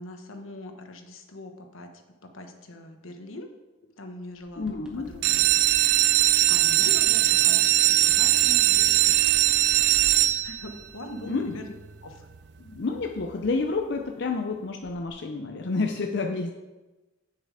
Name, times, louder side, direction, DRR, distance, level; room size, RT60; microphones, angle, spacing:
voice 1, 0.0-1.9 2.2-3.5 4.0-4.7 5.0-5.5 6.1-9.2 10.1-11.6 12.0-12.3, left 1 dB, 80° left, 5 dB, 1.2 m, -42 dB
sound 1, 4.4-10.9 14.8-15.1, equal, 5° right, 1.2 m, -49 dB
voice 2, 4.6-5.1 11.2-11.6 12.6-16.5, left 3 dB, 55° left, 3 dB, 0.6 m, -29 dB
sound 2, 5.1-10.8 11.5-11.9 12.3-12.4 12.7-12.8 13.2-13.3, right 14 dB, 55° right, 0.4 m, -21 dB
8.8 x 6.8 x 4.9 m, 1.1 s
head